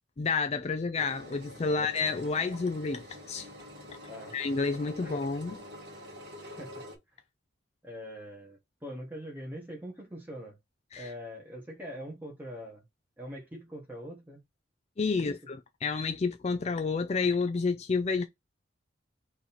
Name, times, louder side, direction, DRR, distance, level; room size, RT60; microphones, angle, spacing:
voice 1, 0.2-3.5 4.3-5.6 10.9-11.1 15.0-18.2, left 4 dB, 30° left, 0.3 m, -30 dB
Engine, 1.0-7.0, left 1 dB, 55° right, 1.8 m, -46 dB
voice 2, 6.4-6.8 7.8-10.6 11.0-12.8 13.2-14.4 15.2-15.4, equal, 10° right, 1.5 m, -43 dB
3.8 x 3.1 x 4.2 m
head